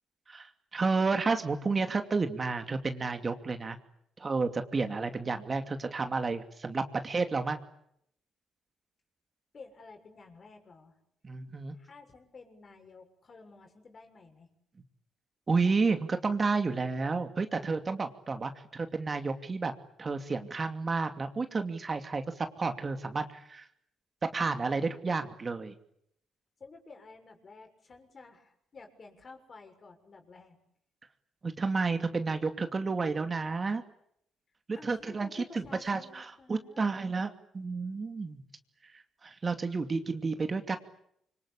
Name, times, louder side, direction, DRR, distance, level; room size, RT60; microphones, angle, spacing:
voice 1, 0.3-3.8 4.2-7.6 11.2-11.7 15.5-19.7 20.0-23.7 24.3-25.7 31.4-33.8 34.7-38.4 38.8-40.8, right 4 dB, 30° right, 7 dB, 2.6 m, -31 dB
voice 2, 9.5-10.9 11.7-14.5 26.6-30.6 34.7-36.9, left 4 dB, 40° left, 5 dB, 6.7 m, -52 dB
27.0 x 25.0 x 8.6 m, 0.72 s
cardioid pair, 90°, 0 cm